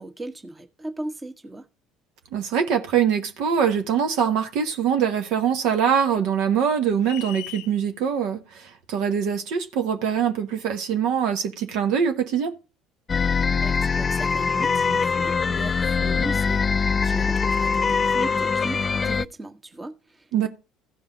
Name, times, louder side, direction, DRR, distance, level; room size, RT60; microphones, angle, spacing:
voice 1, 0.0-1.7 13.6-20.5, right 1 dB, 20° right, 1.3 m, -38 dB
voice 2, 2.3-12.5 20.3-20.5, right 8 dB, 65° right, 1.2 m, -23 dB
sound 1, 7.0-7.7, left 16 dB, 70° left, 0.7 m, -38 dB
sound 2, 13.1-19.3, left 5 dB, 30° left, 0.4 m, -23 dB
15.5 x 5.4 x 3.9 m
hypercardioid pair, 60°, 0 cm